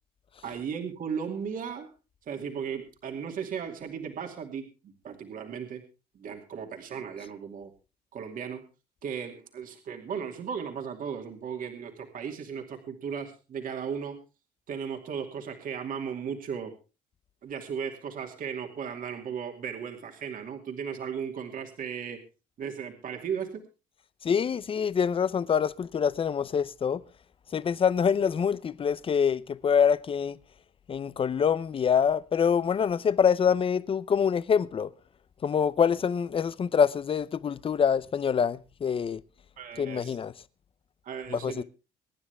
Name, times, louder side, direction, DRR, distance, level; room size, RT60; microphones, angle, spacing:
voice 1, 0.4-1.9 2.2-5.8 6.1-7.7 8.1-8.6 9.0-14.2 14.7-16.7 17.4-22.2 22.6-23.6 39.6-40.2 41.0-41.6, right 7 dB, 55° right, 2.5 m, -36 dB
voice 2, 24.2-27.0 27.5-30.4 30.9-34.9 35.4-39.2 39.8-40.3 41.3-41.6, left 7 dB, 35° left, 0.7 m, -25 dB
24.0 x 9.9 x 3.4 m
cardioid pair, 110°, 17 cm